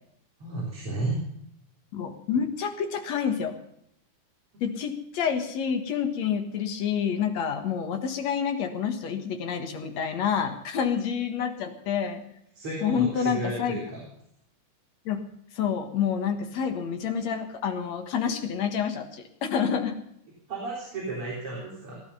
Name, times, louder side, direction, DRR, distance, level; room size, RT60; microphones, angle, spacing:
voice 1, 0.4-1.2 4.5-4.6 12.6-14.0 20.5-22.0, right 2 dB, 40° right, -4 dB, 4.4 m, -33 dB
voice 2, 1.9-3.6 4.6-12.2 12.8-13.8 15.1-15.2 15.5-20.0, left 7 dB, 60° left, 6 dB, 2.5 m, -28 dB
18.0 x 11.5 x 5.6 m, 0.74 s
omnidirectional pair, 3.8 m